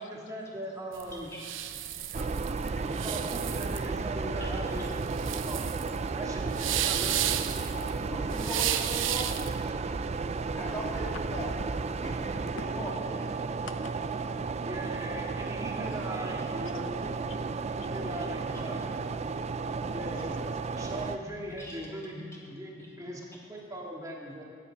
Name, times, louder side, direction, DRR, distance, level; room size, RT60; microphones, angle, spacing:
voice 1, 0.0-1.3 2.8-5.7 6.0-7.4 14.7-16.9 17.8-18.8 19.9-20.5 20.7-24.4, right 1 dB, 20° right, -2 dB, 1.9 m, -39 dB
sound 1, 0.9-9.6, right 12 dB, 75° right, 0.6 m, -33 dB
voice 2, 1.7-3.1 4.4-4.5 7.6-9.3 10.5-11.5 12.0-13.4 15.9-16.1 18.7-18.8 21.6-21.8 22.8-22.9, right 1 dB, 15° left, -4 dB, 2.9 m, -42 dB
sound 2, 2.1-21.2, right 4 dB, 35° right, 0.4 m, -33 dB
sound 3, 4.1-21.9, left 1 dB, 60° right, 2.4 m, -55 dB
voice 3, 9.7-10.6 11.9-12.5 13.6-14.7 15.4-15.5 17.3-17.9 20.1-20.2 22.4-22.5, left 5 dB, 85° left, 9 dB, 0.7 m, -52 dB
15.0 x 10.0 x 5.6 m, 2.5 s
head